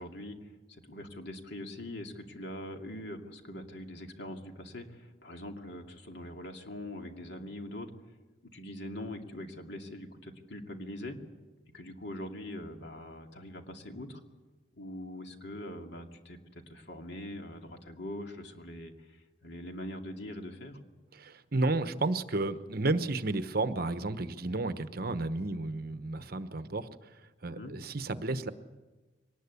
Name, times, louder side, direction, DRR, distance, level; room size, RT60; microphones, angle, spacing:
voice 1, 0.0-7.9 8.5-11.2 11.7-14.2 14.8-20.8 27.5-27.8, left 1 dB, 60° left, 3 dB, 2.5 m, -43 dB
voice 2, 21.2-26.9 27.4-28.5, right 2 dB, 50° right, 11 dB, 1.0 m, -32 dB
23.0 x 19.5 x 8.4 m, 1.2 s
head